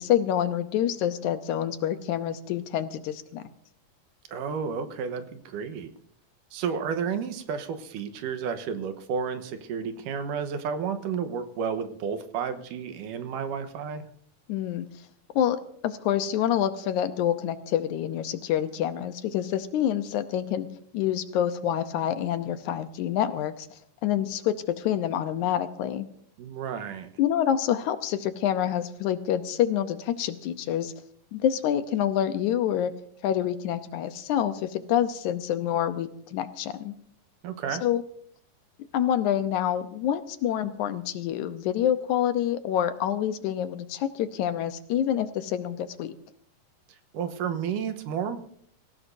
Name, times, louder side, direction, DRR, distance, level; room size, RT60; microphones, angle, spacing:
voice 1, 0.0-3.5 14.5-14.9 15.4-20.7 20.9-23.7 24.0-26.0 27.2-30.9 31.3-32.9 33.2-36.9 37.8-38.0 38.9-46.1, left 10 dB, 75° left, 10 dB, 2.1 m, -27 dB
voice 2, 4.3-5.9 6.5-14.0 26.4-27.1 37.4-37.8 46.9-48.4, right 6 dB, 85° right, 9 dB, 2.7 m, -31 dB
25.0 x 16.0 x 2.7 m, 0.64 s
omnidirectional pair, 3.7 m